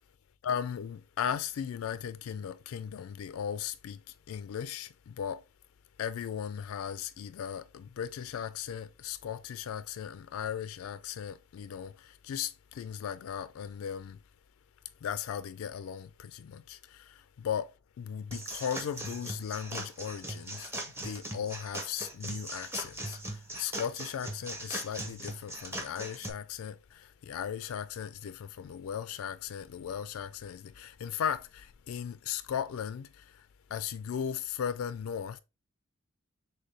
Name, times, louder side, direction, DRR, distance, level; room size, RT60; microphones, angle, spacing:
voice 1, 0.4-5.4 6.0-14.2 15.0-35.4, left 8 dB, 70° left, 0.3 m, -37 dB
sound 1, 18.3-26.3, right 1 dB, 10° right, 0.7 m, -40 dB
6.5 x 2.2 x 3.2 m
head